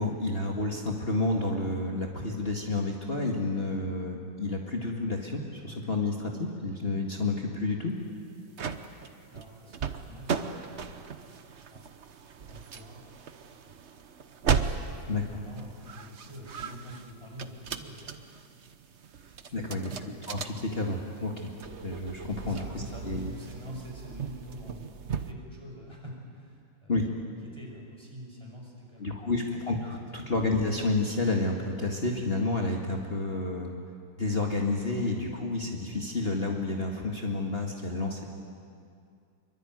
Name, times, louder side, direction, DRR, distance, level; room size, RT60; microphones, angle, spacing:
voice 1, 0.0-8.0 15.1-15.2 19.5-19.9 20.3-21.5 21.8-22.6 23.0-23.3 26.9-27.1 29.0-33.7 34.2-38.2, left 2 dB, 30° left, 0 dB, 2.2 m, -30 dB
sound 1, 8.2-25.3, right 6 dB, 45° right, 1.1 m, -37 dB
voice 2, 9.3-11.4 11.7-12.0 12.4-13.1 13.5-13.8 14.5-18.3 18.9-19.0 19.4-20.1 22.4-27.0 27.4-29.5, equal, 15° right, -1 dB, 6.1 m, -46 dB
24.5 x 24.0 x 9.4 m, 2.3 s
omnidirectional pair, 2.1 m